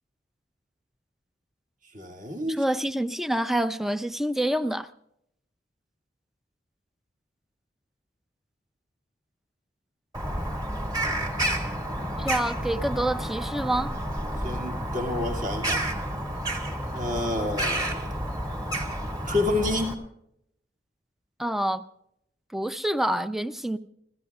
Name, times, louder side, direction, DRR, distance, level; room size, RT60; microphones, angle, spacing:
voice 1, 1.9-2.6 14.4-15.9 16.9-18.1 19.3-20.0, left 2 dB, 45° right, 0 dB, 2.6 m, -29 dB
voice 2, 2.6-4.9 12.2-13.9 21.4-21.8 22.5-23.8, right 1 dB, ahead, 12 dB, 0.6 m, -27 dB
Bird vocalization bird call bird song, 10.1-19.9, right 1 dB, 20° right, 2.2 m, -30 dB
29.0 x 16.0 x 2.4 m, 0.74 s
head